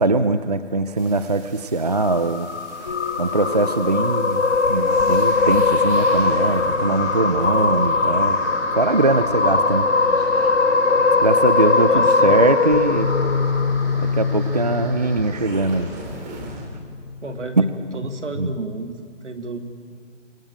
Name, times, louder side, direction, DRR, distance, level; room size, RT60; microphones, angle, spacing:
voice 1, 0.0-2.5 3.2-8.4 8.8-9.9 10.2-10.6 11.2-13.1 14.2-15.9 17.6-17.7 18.4-18.5, right 2 dB, 35° right, 11 dB, 0.6 m, -21 dB
sound 1, 1.0-16.7, right 1 dB, 15° right, 2.5 m, -37 dB
sound 2, 1.9-14.4, left 3 dB, 75° left, 1.7 m, -20 dB
sound 3, 2.8-9.7 11.4-11.5 12.0-19.1, left 5 dB, 30° left, 1.1 m, -30 dB
voice 2, 11.8-12.4 17.2-19.6, right 2 dB, 75° right, 5 dB, 2.9 m, -32 dB
25.0 x 17.5 x 8.9 m, 2.3 s
hypercardioid pair, 170°, 36 cm